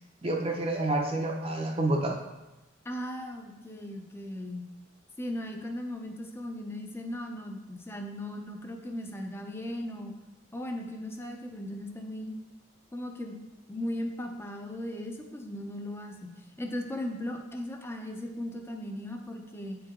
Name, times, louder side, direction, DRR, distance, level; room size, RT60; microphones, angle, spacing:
voice 1, 0.2-2.2, right 2 dB, 30° right, 0 dB, 0.7 m, -28 dB
voice 2, 2.8-4.7 5.2-10.1 10.5-12.3 12.9-13.4 13.7-19.8, left 1 dB, 15° left, 3 dB, 0.7 m, -37 dB
7.9 x 4.7 x 3.7 m, 1.0 s
head